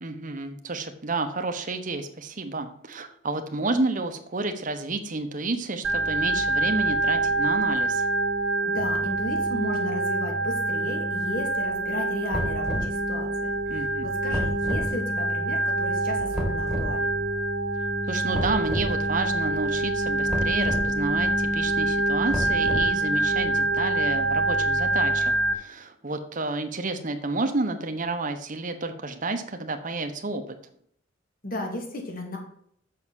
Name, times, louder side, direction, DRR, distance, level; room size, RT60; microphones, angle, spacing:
voice 1, 0.0-8.0 13.7-14.1 18.1-30.4, right 3 dB, 40° right, 7 dB, 1.0 m, -30 dB
Organ, 5.8-25.5, right 2 dB, 75° right, 1.4 m, -26 dB
voice 2, 8.7-17.2 31.4-32.4, left 1 dB, 45° left, 1 dB, 2.3 m, -34 dB
sound 1, 12.3-13.0 14.3-14.9 16.3-16.9 18.3-18.9 20.3-20.9 22.3-23.0, equal, ahead, 2.0 m, -30 dB
6.4 x 6.4 x 7.5 m, 0.67 s
head